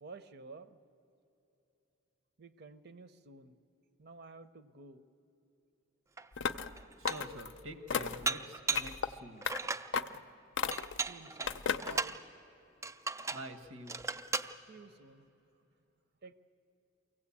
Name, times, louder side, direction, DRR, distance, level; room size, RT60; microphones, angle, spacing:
voice 1, 0.0-0.8 2.4-3.6 4.0-5.0 11.0-12.2 14.7-15.3 16.2-16.3, right 3 dB, 50° right, 12 dB, 0.7 m, -52 dB
Dishes pots and pans, 6.2-6.3 6.8-7.4 8.3-9.0 9.4-9.9 10.7-12.2 12.8-13.5 13.9-14.5, right 4 dB, 15° right, 0.4 m, -36 dB
sound 1, 6.4-6.7 7.0-7.5 7.9-8.3 8.7-9.1 9.4-9.6 9.9-10.2 10.6-11.0 11.5-12.0, left 6 dB, 60° left, 0.5 m, -34 dB
voice 2, 7.0-9.5 13.3-14.0, right 1 dB, 85° right, 8 dB, 1.4 m, -47 dB
23.5 x 16.0 x 8.5 m, 3.0 s
head